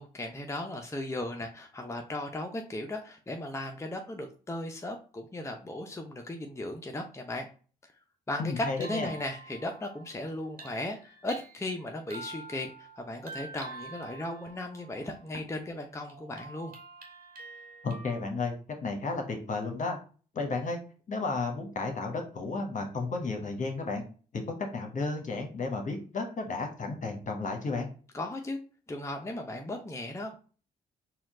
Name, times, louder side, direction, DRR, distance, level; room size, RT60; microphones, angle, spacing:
voice 1, 0.0-7.5 8.3-16.7 28.1-28.6 28.9-30.4, left 1 dB, 15° left, 3 dB, 0.7 m, -36 dB
voice 2, 8.4-9.1 17.8-18.5 18.8-20.0 20.3-20.8 21.1-24.0 24.3-27.9, left 3 dB, 45° left, 3 dB, 1.2 m, -33 dB
sound 1, 8.5-15.6 16.1-18.2, right 3 dB, 50° right, 1.3 m, -47 dB
4.3 x 2.4 x 3.7 m, 0.38 s
hypercardioid pair, 50°, 18 cm